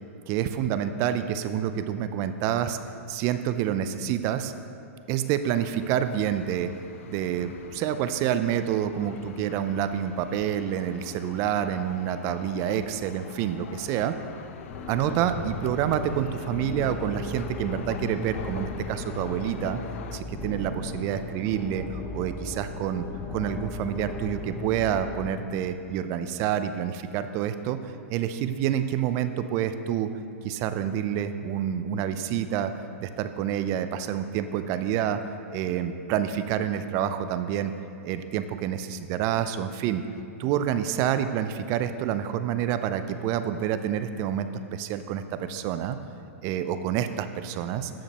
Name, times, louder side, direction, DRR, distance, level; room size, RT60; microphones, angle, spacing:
voice 1, 0.3-2.8 3.1-4.5 5.1-6.7 7.1-14.1 14.9-19.8 20.1-27.8 28.1-30.1 30.4-32.7 33.0-35.2 35.5-37.7 38.0-40.0 40.4-46.0 46.4-47.9, right 10 dB, 40° right, 10 dB, 0.4 m, -28 dB
sound 1, 5.5-20.2, left 8 dB, 65° left, 0.4 m, -44 dB
sound 2, 14.7-25.3, left 2 dB, 25° left, 0.8 m, -37 dB
14.0 x 5.1 x 2.9 m, 2.7 s
hypercardioid pair, 115°, 8 cm